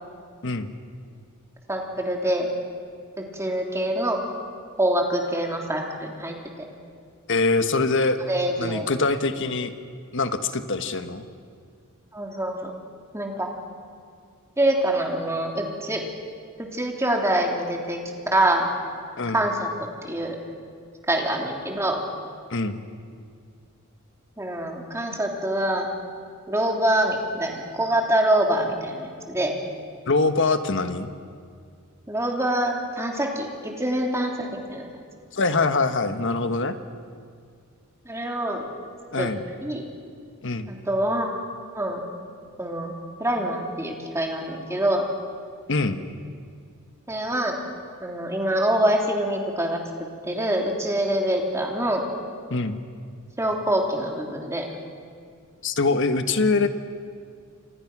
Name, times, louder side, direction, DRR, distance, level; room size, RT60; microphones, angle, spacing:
voice 1, 0.4-0.8 7.3-8.2 8.6-9.7 10.1-11.3 19.2-19.4 22.5-22.8 30.1-31.1 35.3-36.7 39.1-39.4 40.4-40.7 45.7-46.0 52.5-52.8 55.6-56.7, left 3 dB, 60° left, 9 dB, 1.4 m, -23 dB
voice 2, 1.7-2.5 3.2-4.2 4.8-6.6 8.3-8.9 12.1-12.7 13.1-13.5 14.6-16.0 16.6-18.0 18.3-18.7 19.3-19.7 20.0-20.4 21.1-22.0 24.4-25.9 26.5-29.5 32.1-34.9 38.0-38.7 39.2-39.3 39.6-39.9 40.7-41.3 41.7-42.0 42.6-42.9 43.2-45.1 47.1-47.6 48.0-49.8 50.3-52.1 53.4-54.6, right 1 dB, 15° right, 1 dB, 3.1 m, -25 dB
29.0 x 27.0 x 6.2 m, 2.2 s
head